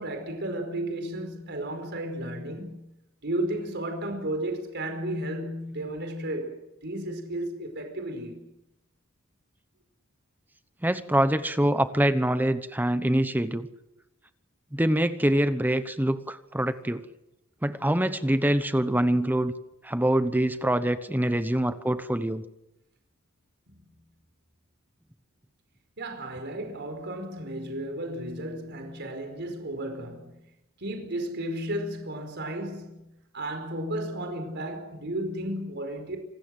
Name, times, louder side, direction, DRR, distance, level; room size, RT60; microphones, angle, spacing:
voice 1, 0.0-2.8 3.2-6.5 6.8-8.4 23.7-23.8 26.0-30.4 30.8-33.1 33.3-36.2, right 1 dB, 55° right, 4.8 m, -33 dB
voice 2, 10.8-13.7 14.7-17.0 17.6-19.5 19.8-22.4, right 1 dB, 10° right, 1.0 m, -25 dB
27.0 x 19.0 x 7.8 m
head